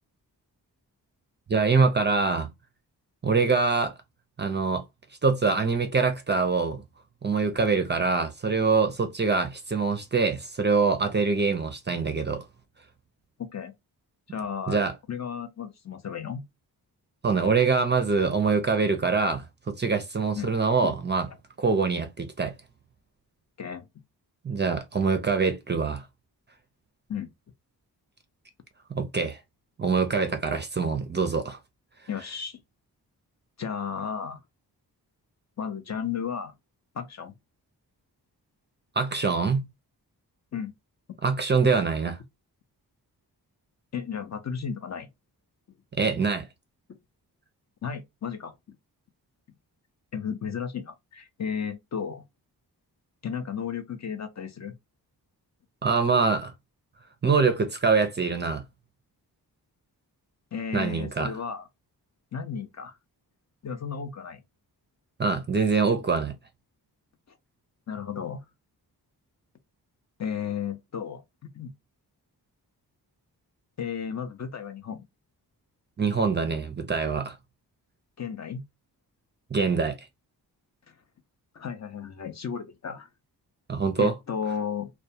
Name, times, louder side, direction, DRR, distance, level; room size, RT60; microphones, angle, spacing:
voice 1, 1.5-2.5 3.2-3.9 4.4-4.8 5.2-6.8 7.2-12.4 14.7-14.9 17.2-21.3 21.6-22.5 24.4-26.0 29.0-29.4 29.8-31.6 39.0-39.7 41.2-42.2 46.0-46.5 55.8-56.5 57.2-58.6 60.7-61.3 65.2-66.3 76.0-77.4 79.5-80.0 83.7-84.1, right 4 dB, 30° right, 0.4 m, -24 dB
voice 2, 13.4-13.7 14.3-16.5 20.3-20.5 20.8-21.0 23.6-23.9 27.1-27.3 32.1-32.6 33.6-34.4 35.6-36.5 36.9-37.3 40.5-40.7 43.9-45.1 47.8-48.5 50.1-52.2 53.2-54.8 60.5-61.7 62.3-62.9 63.6-64.4 67.9-68.4 70.2-71.7 73.8-75.0 78.2-78.6 80.9-81.0 81.5-83.1 84.0-84.9, left 7 dB, 45° left, 0.6 m, -34 dB
2.3 x 2.2 x 2.6 m
cardioid pair, 70°, 39 cm